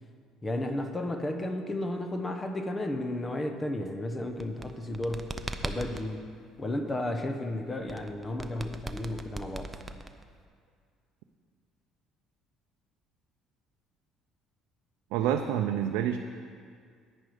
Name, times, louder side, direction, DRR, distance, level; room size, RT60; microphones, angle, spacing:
voice 1, 0.4-5.3 5.6-6.3 6.6-9.7, left 1 dB, 20° left, 6 dB, 0.9 m, -33 dB
sound 1, 4.3-6.1 7.9-10.5, right 2 dB, 15° right, 0.6 m, -38 dB
voice 2, 15.1-16.2, right 10 dB, 85° right, 5 dB, 0.5 m, -27 dB
10.0 x 9.7 x 5.0 m, 2.1 s
cardioid pair, 115°, 0 cm